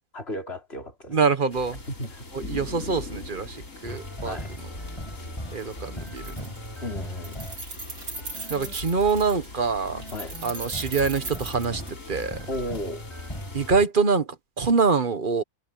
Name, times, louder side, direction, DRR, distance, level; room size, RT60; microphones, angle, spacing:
voice 1, 0.1-1.2 1.9-2.3 4.2-4.5 6.8-7.4 10.1-10.4 12.5-13.0, left 1 dB, 40° left, 5.1 m, -34 dB
voice 2, 1.1-1.8 2.5-3.5 3.8-4.4 5.5-6.2 8.5-10.0 10.4-11.8 12.1-12.4 13.5-14.2 14.6-15.4, right 5 dB, 35° right, 1.3 m, -24 dB
sound 1, 1.5-13.7, left 3 dB, 55° left, 3.8 m, -41 dB
sound 2, 3.8-13.9, left 1 dB, 20° left, 6.7 m, -39 dB
Keys jangling, 5.6-5.7 6.0-6.8 7.0-9.5 10.0-12.3, right 3 dB, 65° right, 3.4 m, -38 dB
omnidirectional pair, 1.6 m